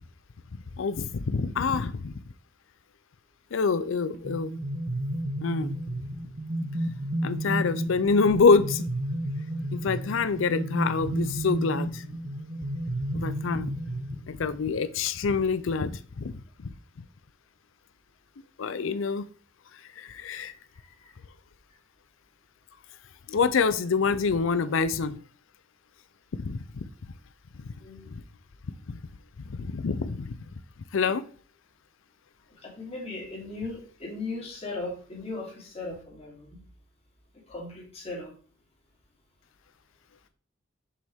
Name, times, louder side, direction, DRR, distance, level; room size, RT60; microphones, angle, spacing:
voice 1, 0.8-2.1 3.5-4.5 5.4-5.7 7.2-8.9 9.7-12.0 13.1-13.7 14.3-16.3 16.6-16.7 18.6-19.2 20.0-20.5 23.3-25.2 26.4-26.8 28.1-28.2 28.9-29.0 29.5-30.4 30.9-31.2, left 4 dB, 70° left, 15 dB, 0.5 m, -26 dB
sound 1, 4.1-14.6, right 1 dB, 50° right, 1.0 m, -32 dB
voice 2, 20.3-21.1 27.8-28.2 32.6-36.6 37.5-38.3, left 2 dB, 30° left, -3 dB, 2.7 m, -38 dB
6.7 x 5.2 x 3.5 m, 0.43 s
head